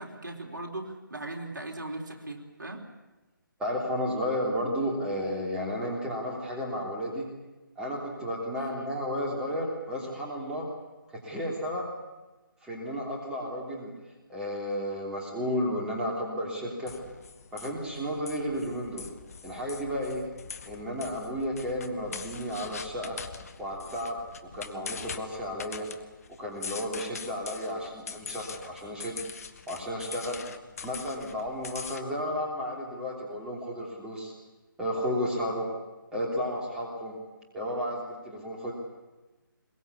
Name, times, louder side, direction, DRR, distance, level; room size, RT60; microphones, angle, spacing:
voice 1, 0.0-2.8, right 2 dB, 60° right, 2 dB, 3.8 m, -38 dB
voice 2, 3.6-7.3 7.8-10.7 11.1-11.9 12.6-13.9 14.3-16.9 17.5-19.0 19.4-20.2 20.6-23.2 23.6-25.9 26.4-29.2 29.7-30.4 30.8-34.3 34.8-35.7 36.1-37.1 37.5-38.7, equal, 5° right, -2 dB, 3.1 m, -33 dB
sound 1, 16.9-32.0, left 5 dB, 45° left, 1.4 m, -43 dB
22.5 x 20.5 x 8.5 m, 1.1 s
figure-of-eight pair, 150°, 12 cm